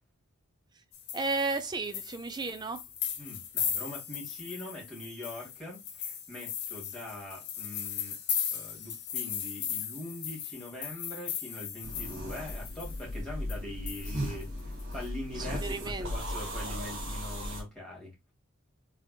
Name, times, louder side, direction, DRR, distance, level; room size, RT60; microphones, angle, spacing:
sound 1, 0.9-13.2 13.5-13.6 13.9-15.1, left 9 dB, 50° left, 0.7 m, -37 dB
voice 1, 1.1-2.8 15.3-16.1, right 3 dB, 20° right, 0.4 m, -33 dB
voice 2, 3.2-8.2 8.5-14.5 14.9-18.1, left 1 dB, ahead, 2.1 m, -42 dB
sound 2, 11.8-17.6, equal, 55° right, 1.2 m, -36 dB
3.7 x 3.4 x 2.3 m
head